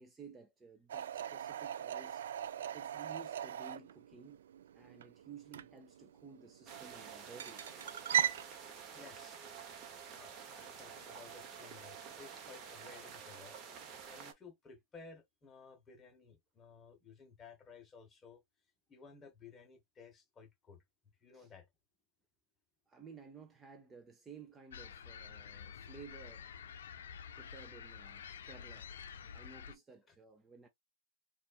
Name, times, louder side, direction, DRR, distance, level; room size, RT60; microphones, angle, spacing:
voice 1, 0.0-2.3 2.7-4.5 4.7-7.7 21.3-21.5 22.9-26.7 27.3-30.7, right 5 dB, 15° right, 0.6 m, -55 dB
sound 1, 0.9-8.4, right 9 dB, 80° right, 0.3 m, -39 dB
sound 2, 6.7-14.3, right 7 dB, 35° right, 0.9 m, -50 dB
voice 2, 8.9-9.4 9.9-13.6 14.1-18.4 18.9-20.8 21.2-21.7 30.1-30.2, left 5 dB, 20° left, 1.0 m, -56 dB
Large Group of Seagulls on Pier, 24.7-29.7, left 7 dB, 80° left, 0.5 m, -49 dB
4.0 x 2.5 x 2.4 m
hypercardioid pair, 125°, 0 cm